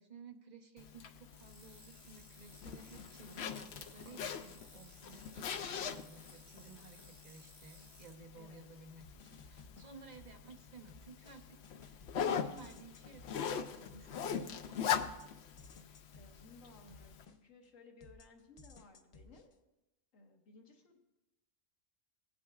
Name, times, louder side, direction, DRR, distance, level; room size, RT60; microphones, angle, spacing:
voice 1, 0.0-15.1, right 4 dB, 40° right, 2 dB, 1.0 m, -55 dB
Zipper (clothing), 0.8-17.2, left 8 dB, 65° left, 0.8 m, -42 dB
sound 1, 1.3-8.1, equal, 15° right, 2.2 m, -61 dB
voice 2, 8.3-8.6 16.1-19.5 20.1-21.0, left 3 dB, 90° left, 2 dB, 1.6 m, -59 dB
sound 2, 9.0-10.5 10.9-17.7 18.0-19.5, left 3 dB, 45° left, 0.4 m, -58 dB
18.0 x 8.6 x 2.4 m, 0.97 s
omnidirectional pair, 1.3 m